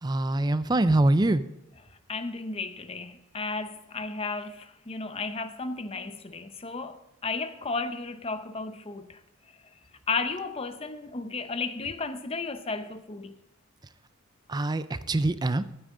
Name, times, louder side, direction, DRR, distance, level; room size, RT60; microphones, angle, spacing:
voice 1, 0.0-1.4 14.5-15.6, right 2 dB, 20° right, 0.4 m, -24 dB
voice 2, 2.1-9.2 10.1-13.3, left 4 dB, 25° left, 0.6 m, -34 dB
14.0 x 8.9 x 3.7 m
head